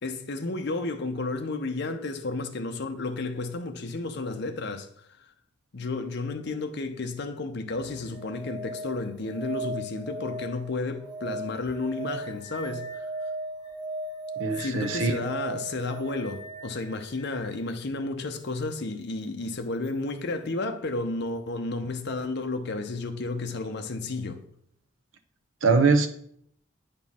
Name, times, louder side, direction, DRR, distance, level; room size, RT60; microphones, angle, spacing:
voice 1, 0.0-5.2 5.7-13.1 14.6-24.4, left 3 dB, 55° left, 0.7 m, -32 dB
sound 1, 7.7-17.5 19.8-19.9, right 2 dB, 20° right, 1.3 m, -37 dB
voice 2, 14.4-15.2 25.6-26.1, right 4 dB, 75° right, 0.7 m, -22 dB
9.1 x 4.5 x 3.6 m
head